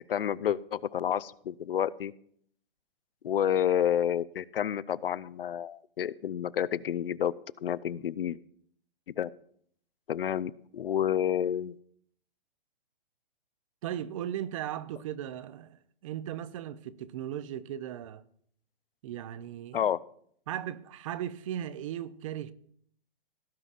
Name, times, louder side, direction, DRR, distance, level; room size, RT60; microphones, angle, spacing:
voice 1, 0.0-2.1 3.2-7.3 7.6-8.4 9.1-9.3 10.1-11.7 19.7-20.0, left 9 dB, 75° left, 0.6 m, -29 dB
voice 2, 13.8-18.2 19.0-19.9 20.5-22.5, right 11 dB, 35° right, 0.6 m, -37 dB
18.0 x 9.5 x 2.5 m
hypercardioid pair, 135°, 29 cm